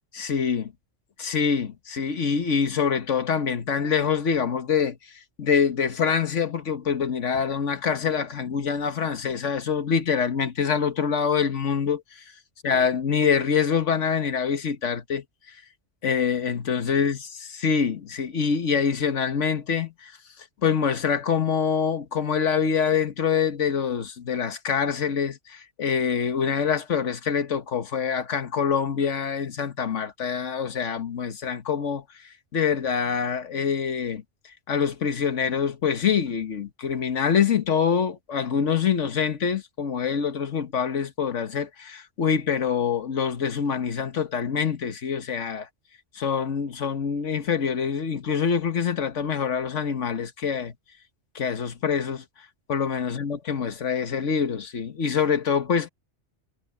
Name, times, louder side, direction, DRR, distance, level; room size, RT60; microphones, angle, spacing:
voice 1, 0.1-0.7 1.2-5.0 5.4-12.2 12.6-15.2 16.0-20.1 20.6-32.0 32.5-34.2 34.7-45.7 46.1-50.7 51.3-52.2 52.7-55.9, left 6 dB, 80° left, 1.6 m, -25 dB
omnidirectional pair, 1.2 m